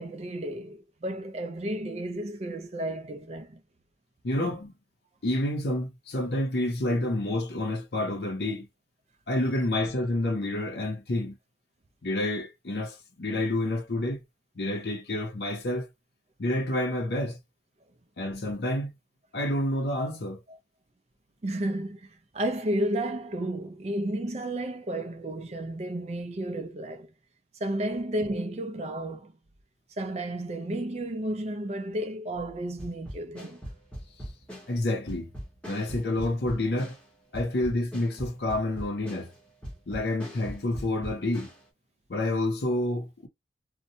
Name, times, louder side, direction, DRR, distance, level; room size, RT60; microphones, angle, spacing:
voice 1, 0.0-3.6 20.5-20.6 21.4-27.1 27.6-29.3 30.0-33.6, right 1 dB, 35° right, 0.4 m, -32 dB
voice 2, 4.2-4.7 5.2-8.7 9.3-11.3 12.0-14.2 14.6-15.9 16.4-17.4 18.2-18.9 19.3-20.4 34.7-35.3 35.7-36.9 37.3-39.3 39.9-41.5 42.1-43.3, left 1 dB, 60° left, 0.6 m, -29 dB
sound 1, 32.8-41.6, equal, 5° left, 0.9 m, -41 dB
2.7 x 2.1 x 2.7 m
head